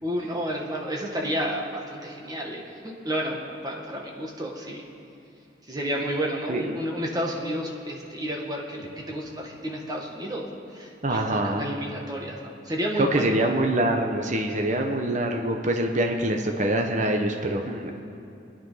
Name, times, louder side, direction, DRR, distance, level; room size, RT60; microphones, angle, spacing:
voice 1, 0.0-4.8 5.7-10.4 10.7-13.4, equal, 20° right, -1 dB, 1.9 m, -31 dB
voice 2, 11.0-11.7 12.9-17.9, right 1 dB, 45° right, 3 dB, 1.1 m, -25 dB
23.5 x 10.0 x 5.8 m, 2.7 s
head